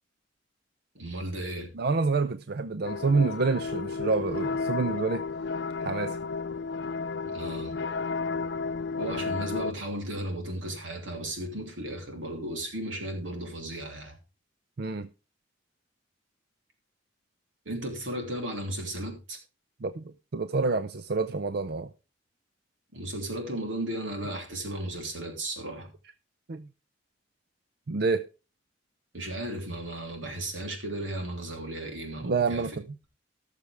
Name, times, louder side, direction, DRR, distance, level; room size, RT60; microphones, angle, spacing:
voice 1, 0.9-1.7 7.3-7.8 9.0-14.2 17.6-19.4 22.9-25.9 29.1-32.8, right 1 dB, 90° right, 3.2 m, -35 dB
voice 2, 1.7-5.3 5.8-6.2 14.8-15.1 19.8-21.9 26.5-26.7 27.9-28.3 32.2-32.8, right 4 dB, 55° right, 0.5 m, -28 dB
sound 1, 2.8-9.7, left 4 dB, 60° left, 0.5 m, -32 dB
17.5 x 6.7 x 3.4 m
head